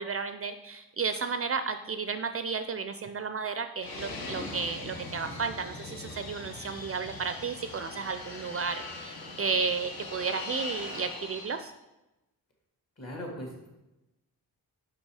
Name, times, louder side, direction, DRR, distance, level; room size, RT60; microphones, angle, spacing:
voice 1, 0.0-11.7, right 5 dB, 40° right, 9 dB, 0.4 m, -33 dB
Fixed-wing aircraft airplane, 3.8-11.6, left 2 dB, 70° left, 1.3 m, -41 dB
voice 2, 13.0-13.7, equal, 45° left, 0 dB, 2.2 m, -39 dB
5.6 x 5.3 x 4.8 m, 0.98 s
cardioid pair, 95°, 38 cm